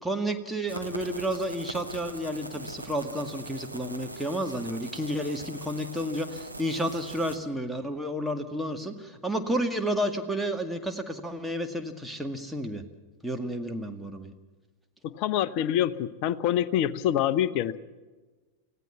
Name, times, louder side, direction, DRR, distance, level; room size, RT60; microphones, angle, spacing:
voice 1, 0.0-12.8 13.2-14.3, equal, ahead, 4 dB, 2.0 m, -31 dB
sound 1, 0.7-7.4, right 2 dB, 90° right, 1.4 m, -41 dB
voice 2, 15.0-17.8, left 11 dB, 45° left, 15 dB, 0.9 m, -26 dB
25.5 x 17.0 x 7.1 m, 1.2 s
figure-of-eight pair, 90°, 0 cm